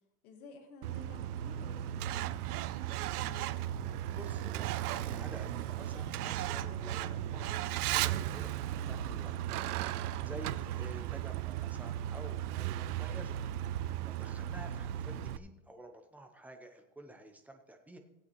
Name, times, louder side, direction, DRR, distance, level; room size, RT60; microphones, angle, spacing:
voice 1, 0.2-3.8 10.6-10.8, left 2 dB, 75° left, 4 dB, 1.8 m, -53 dB
Truck, 0.8-15.4, right 12 dB, 80° right, 0.6 m, -36 dB
voice 2, 4.1-9.5 10.2-13.4 14.1-18.0, right 1 dB, 5° right, 4 dB, 0.6 m, -50 dB
17.0 x 8.5 x 3.1 m, 0.93 s
supercardioid pair, 150°, 45 cm